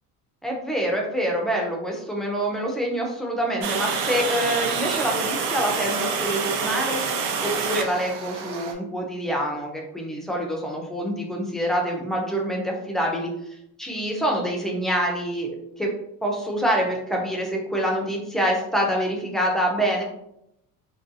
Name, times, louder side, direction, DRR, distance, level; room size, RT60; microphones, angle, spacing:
voice 1, 0.4-7.0 7.4-15.9 16.2-20.0, equal, ahead, -1 dB, 0.3 m, -26 dB
Water, 3.6-8.7, right 5 dB, 85° right, 0.5 m, -27 dB
2.5 x 2.2 x 2.6 m, 0.79 s
cardioid pair, 150°, 35 cm